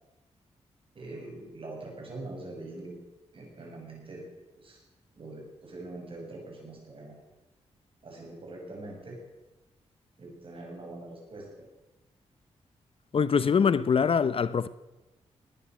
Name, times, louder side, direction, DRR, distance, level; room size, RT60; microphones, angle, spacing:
voice 1, 0.9-2.9 3.3-4.3 4.6-4.8 5.2-7.2 8.0-9.2 10.2-11.7 13.4-13.7, right 2 dB, 50° right, 6.5 m, -43 dB
voice 2, 13.1-14.7, left 6 dB, 50° left, 0.6 m, -23 dB
20.0 x 10.0 x 6.2 m
cardioid pair, 70°, 12 cm